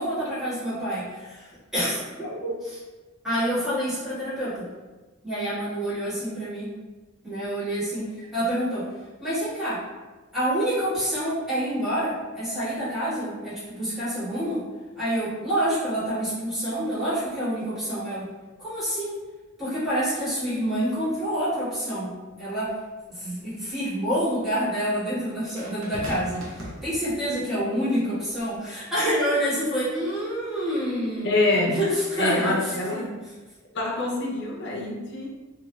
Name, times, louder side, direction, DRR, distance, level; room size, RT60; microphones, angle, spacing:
voice 1, 0.0-2.0 3.2-4.7 5.2-6.7 7.2-8.9 9.2-9.8 10.3-14.6 15.0-18.3 18.6-19.2 19.6-22.7 23.1-31.3 31.7-33.1, equal, ahead, -14 dB, 1.5 m, -27 dB
voice 2, 2.2-2.6 31.2-31.8 32.2-33.0 33.7-35.3, left 2 dB, 55° left, -2 dB, 0.6 m, -25 dB
sound 1, 22.7-22.8 25.6-27.5 28.4-28.6, right 1 dB, 80° right, 0.8 m, -38 dB
3.1 x 2.8 x 2.3 m, 1.2 s
head